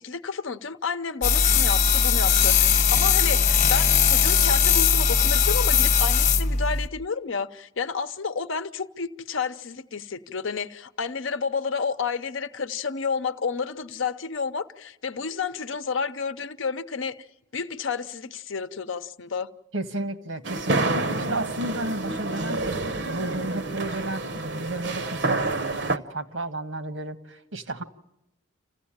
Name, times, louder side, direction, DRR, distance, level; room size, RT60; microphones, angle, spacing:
voice 1, 0.0-17.3 17.5-19.5, left 5 dB, 75° left, 0.8 m, -30 dB
sound 1, 1.2-6.9, left 6 dB, 40° left, 1.0 m, -20 dB
voice 2, 2.7-3.0 3.4-3.7 19.7-27.8, right 2 dB, 85° right, 1.4 m, -33 dB
sound 2, 20.4-26.0, right 2 dB, 60° right, 0.8 m, -28 dB
27.0 x 15.5 x 8.8 m
head